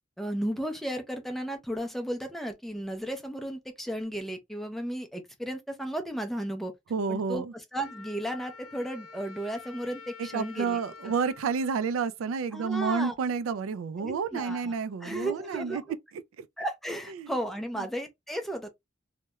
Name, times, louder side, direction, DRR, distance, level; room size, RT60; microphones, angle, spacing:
voice 1, 0.2-6.7 7.1-10.8 12.5-13.1 14.0-14.7 15.0-15.8 16.6-18.7, right 1 dB, ahead, 0.4 m, -34 dB
voice 2, 6.9-7.5 10.2-15.8 16.4-16.5 17.1-17.3 17.8-17.9, right 5 dB, 80° right, 0.3 m, -30 dB
Wind instrument woodwind instrument, 7.8-12.6, left 5 dB, 85° left, 0.4 m, -48 dB
2.3 x 2.1 x 2.8 m
head